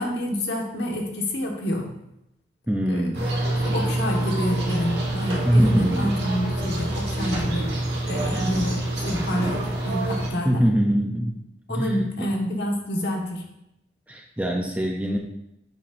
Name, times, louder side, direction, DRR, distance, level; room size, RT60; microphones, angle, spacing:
voice 1, 0.0-1.9 2.9-3.1 3.5-7.6 8.1-10.6 11.7-13.4, equal, 60° left, 0 dB, 1.2 m, -28 dB
voice 2, 2.7-3.3 5.4-6.1 10.4-11.4 11.7-12.3 14.1-15.2, equal, 10° right, 0 dB, 0.5 m, -23 dB
sound 1, 3.1-10.3, right 1 dB, 55° right, 1.7 m, -26 dB
7.3 x 6.0 x 2.6 m, 0.83 s
head